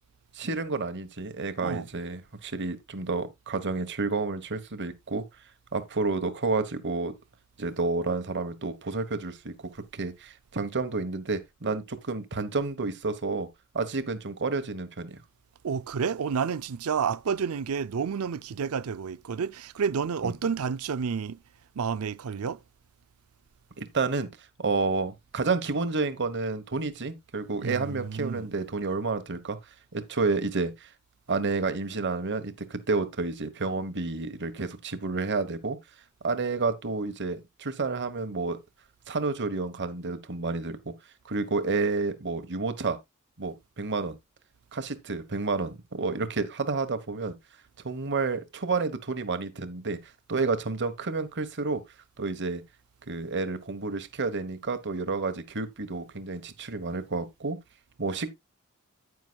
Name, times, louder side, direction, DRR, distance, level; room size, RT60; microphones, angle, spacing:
voice 1, 0.3-5.2 5.7-7.1 7.6-13.5 13.7-15.2 20.2-20.3 23.8-24.3 24.6-29.6 29.9-30.9 31.3-35.8 36.2-38.6 39.1-40.9 41.2-43.0 43.4-44.2 44.7-47.4 47.8-50.0 50.3-51.8 52.2-52.6 53.1-57.6 58.0-58.3, right 3 dB, 55° right, 1.2 m, -30 dB
voice 2, 15.6-21.4 21.8-22.6 27.6-28.5, right 6 dB, 75° right, 0.5 m, -30 dB
9.6 x 9.2 x 2.3 m
head